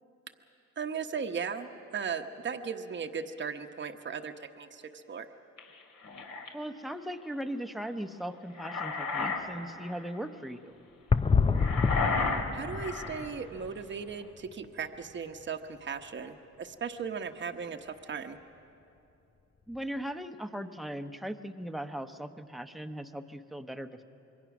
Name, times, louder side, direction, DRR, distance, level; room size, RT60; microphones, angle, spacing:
voice 1, 0.8-5.3 12.5-18.4, right 6 dB, 40° right, 5 dB, 1.1 m, -37 dB
sound 1, 5.6-6.5 8.3-9.4 9.8-10.0 11.5-13.3, left 4 dB, 65° left, 2.5 m, -33 dB
voice 2, 6.5-10.7 19.7-24.0, equal, ahead, 7 dB, 0.9 m, -38 dB
sound 2, 11.1-14.1 14.4-14.5 15.1-15.2 19.7-19.8, left 5 dB, 20° left, 0.5 m, -28 dB
26.0 x 22.5 x 6.1 m, 2.8 s
cardioid pair, 90°, 30 cm